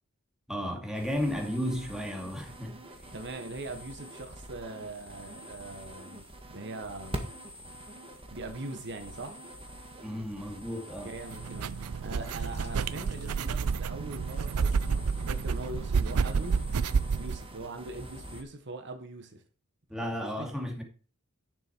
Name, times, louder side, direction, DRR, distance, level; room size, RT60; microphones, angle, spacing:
voice 1, 0.5-3.1 10.0-11.1 19.9-20.8, equal, 5° right, 2.4 m, -34 dB
sound 1, 0.9-18.4, equal, 25° right, 1.6 m, -45 dB
voice 2, 3.1-7.2 8.3-9.4 11.0-16.6 17.2-19.4 20.0-20.5, right 2 dB, 55° right, 1.4 m, -42 dB
sound 2, 11.3-17.4, right 5 dB, 85° right, 0.5 m, -30 dB
Liquid, 11.9-15.3 15.6-15.8, left 2 dB, 30° left, 2.2 m, -57 dB
10.5 x 6.8 x 4.6 m
head